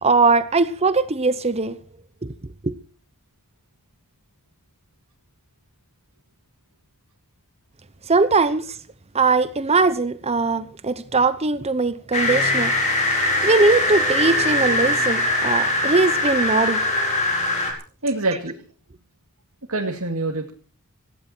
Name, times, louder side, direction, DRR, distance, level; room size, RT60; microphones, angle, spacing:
voice 1, 0.0-1.8 2.2-2.3 2.6-2.8 8.1-8.8 9.1-12.7 13.4-16.8, right 3 dB, 30° right, 0.8 m, -20 dB
sound 1, 12.1-17.7, left 1 dB, 35° left, 5.0 m, -21 dB
voice 2, 18.0-18.6 19.7-20.5, right 2 dB, 70° right, 2.4 m, -25 dB
18.5 x 16.0 x 4.5 m
head